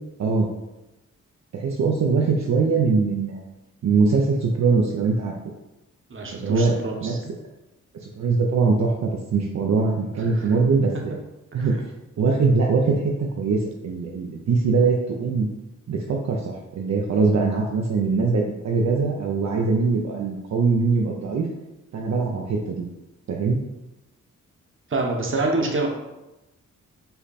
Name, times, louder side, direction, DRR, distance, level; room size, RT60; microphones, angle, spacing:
voice 1, 1.5-3.4 3.8-5.4 6.3-7.2 8.2-11.1 11.5-11.8 12.2-13.0 13.4-15.5 15.9-21.5 21.9-22.8 23.3-23.6, right 4 dB, 65° right, -1 dB, 0.6 m, -22 dB
voice 2, 6.1-7.3 10.3-10.5 11.6-11.8 24.9-25.9, right 2 dB, 40° right, 1 dB, 1.0 m, -26 dB
5.7 x 2.2 x 4.1 m, 0.99 s
cardioid pair, 75°, 30 cm